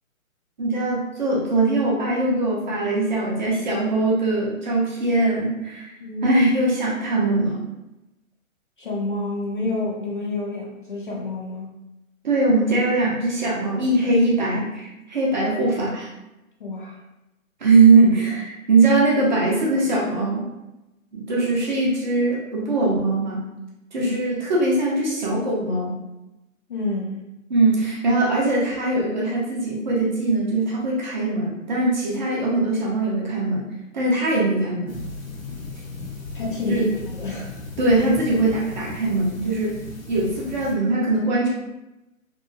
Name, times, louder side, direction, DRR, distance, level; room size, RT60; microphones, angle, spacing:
voice 1, 0.6-5.9 6.2-7.7 12.2-16.1 17.6-20.5 21.1-23.5 23.9-26.0 27.5-33.6 33.9-35.0 36.7-36.9 37.8-39.8 40.1-41.5, right 2 dB, 35° right, -4 dB, 0.6 m, -21 dB
voice 2, 6.0-6.4 8.8-11.7 16.6-17.0 24.0-24.1 26.7-27.3 36.3-37.6, left 2 dB, 40° left, -2 dB, 0.5 m, -28 dB
sound 1, 34.9-40.7, left 3 dB, 75° left, 0.9 m, -36 dB
2.9 x 2.4 x 2.2 m, 0.95 s
hypercardioid pair, 145°, 41 cm